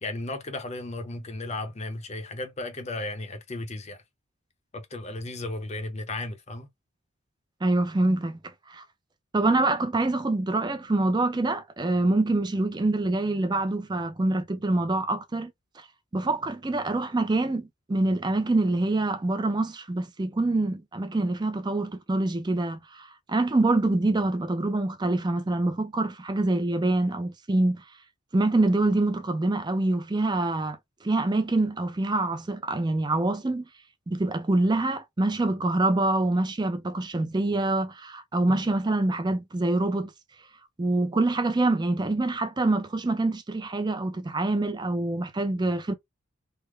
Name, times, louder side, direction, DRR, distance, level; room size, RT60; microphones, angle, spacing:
voice 1, 0.0-4.0 4.7-6.7, left 2 dB, 30° left, 0.6 m, -35 dB
voice 2, 7.6-8.8 9.3-15.5 15.8-15.9 16.1-27.8 28.3-33.6 34.1-40.1 40.8-45.9, right 2 dB, 20° right, 0.5 m, -25 dB
3.5 x 2.1 x 3.1 m
head